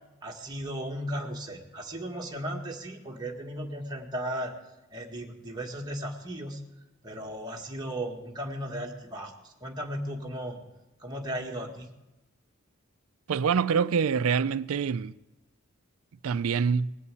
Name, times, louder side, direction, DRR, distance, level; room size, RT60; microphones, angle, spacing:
voice 1, 0.2-4.5 4.9-6.6 7.0-10.6 11.0-11.9, right 1 dB, 20° right, 1.7 m, -36 dB
voice 2, 13.3-15.1 16.2-17.0, right 6 dB, 85° right, 0.4 m, -25 dB
19.5 x 8.3 x 8.4 m
head